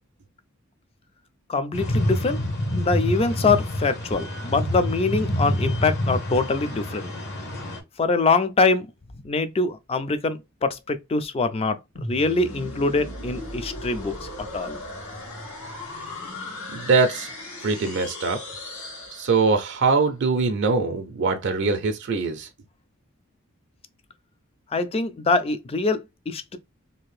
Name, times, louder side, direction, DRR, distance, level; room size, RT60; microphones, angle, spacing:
voice 1, 1.5-2.4 2.8-7.1 8.0-8.9 9.2-11.8 12.1-14.8 24.7-26.6, left 3 dB, 25° left, 0.3 m, -24 dB
sound 1, 1.7-7.8, left 1 dB, 55° left, 1.0 m, -27 dB
sound 2, 12.0-19.8, left 1 dB, 80° left, 1.3 m, -37 dB
voice 2, 16.7-17.3 17.6-18.4 19.1-22.5, right 4 dB, 55° right, 0.4 m, -22 dB
2.8 x 2.5 x 3.1 m
head